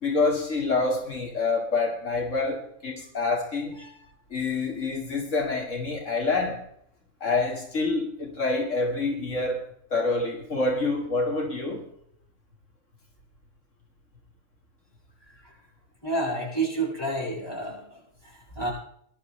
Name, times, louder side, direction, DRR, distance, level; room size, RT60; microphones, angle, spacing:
voice 1, 0.0-3.9 4.3-6.6 7.2-11.8, left 3 dB, 80° left, 1 dB, 2.5 m, -27 dB
voice 2, 16.0-18.7, right 2 dB, 20° left, -4 dB, 7.6 m, -30 dB
21.5 x 12.0 x 3.3 m, 0.69 s
omnidirectional pair, 1.3 m